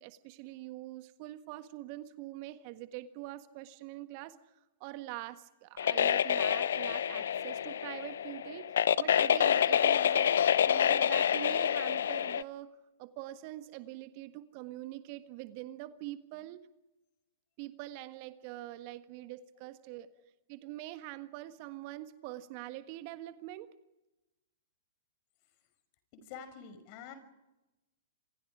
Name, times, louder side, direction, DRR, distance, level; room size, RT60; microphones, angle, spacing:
voice 1, 0.0-4.4 4.8-10.4 10.6-16.7 17.6-20.1 20.5-23.7, right 15 dB, 45° right, 11 dB, 1.5 m, -44 dB
sound 1, 5.8-12.4, left 9 dB, 65° left, 0.7 m, -27 dB
voice 2, 26.1-27.1, left 7 dB, 40° left, 9 dB, 5.7 m, -48 dB
27.5 x 26.5 x 5.0 m, 0.99 s
figure-of-eight pair, 110°, 0 cm